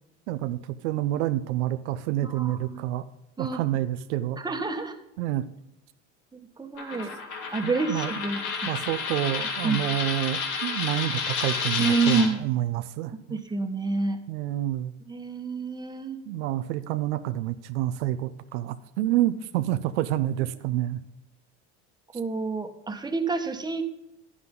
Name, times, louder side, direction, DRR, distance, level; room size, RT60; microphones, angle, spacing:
voice 1, 0.3-3.0 3.4-4.4 5.2-5.4 7.6-8.1 8.7-13.4 14.3-14.9 16.3-21.0, right 14 dB, 85° right, 11 dB, 0.7 m, -28 dB
voice 2, 2.2-2.8 3.4-3.6 4.4-5.0 6.3-7.1 7.5-8.4 9.6-9.8 11.8-12.5 13.1-14.2 15.1-16.2 22.1-23.8, right 4 dB, 10° right, 6 dB, 1.3 m, -28 dB
Coin (dropping), 6.8-12.3, left 5 dB, 60° left, 2.7 m, -30 dB
9.8 x 9.6 x 3.8 m, 0.89 s
supercardioid pair, 100°, 34 cm